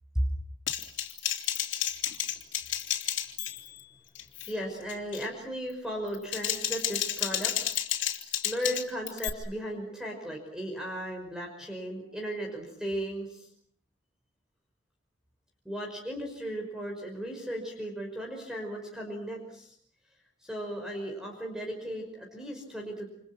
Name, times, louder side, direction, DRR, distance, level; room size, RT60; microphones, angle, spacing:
Typing, 0.7-3.8 4.2-4.5 4.9-5.3 6.1-9.3, left 11 dB, 75° left, 3.4 m, -31 dB
voice 1, 4.5-7.8 8.4-13.5 15.7-19.7 20.4-23.1, equal, 5° right, 1 dB, 5.5 m, -36 dB
29.5 x 28.5 x 6.1 m, 0.64 s
head